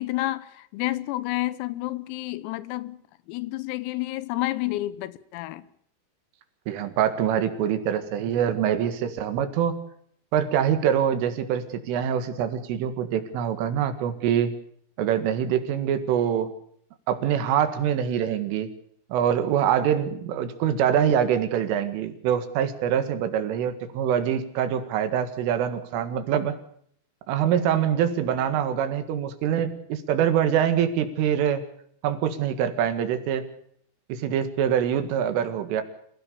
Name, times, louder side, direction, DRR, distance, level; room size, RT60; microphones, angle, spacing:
voice 1, 0.0-3.0 3.3-5.7, left 17 dB, 90° left, 3.8 m, -30 dB
voice 2, 6.7-9.8 10.3-14.5 15.0-16.5 17.1-18.7 19.1-26.6 27.3-31.6 32.0-33.5 34.1-35.8, right 9 dB, 75° right, 4.3 m, -24 dB
27.0 x 16.5 x 6.8 m
omnidirectional pair, 6.0 m